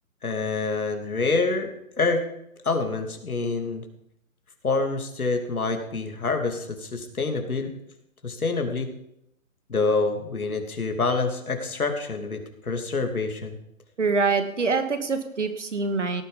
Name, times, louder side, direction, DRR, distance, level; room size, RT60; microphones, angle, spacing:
voice 1, 0.2-2.2 2.6-3.8 4.6-7.7 8.2-8.9 9.7-13.6, left 3 dB, 90° left, 5 dB, 2.9 m, -26 dB
voice 2, 14.0-16.2, right 4 dB, 55° right, 9 dB, 2.0 m, -25 dB
17.0 x 9.7 x 5.2 m, 0.77 s
hypercardioid pair, 175°, 42 cm